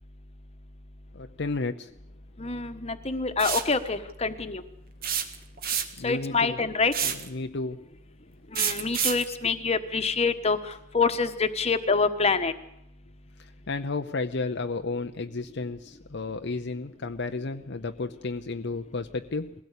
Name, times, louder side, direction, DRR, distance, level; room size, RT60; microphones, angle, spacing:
voice 1, 1.1-1.9 6.0-6.6 7.0-7.8 13.4-19.5, left 3 dB, 60° left, 6 dB, 0.7 m, -32 dB
voice 2, 2.4-4.6 6.0-7.1 8.5-12.5, left 4 dB, 30° left, 9 dB, 1.3 m, -26 dB
sound 1, 3.4-3.7 5.0-6.1 6.9-7.3 8.6-9.3, right 8 dB, 45° right, 1.7 m, -28 dB
21.5 x 16.5 x 8.4 m, 0.77 s
head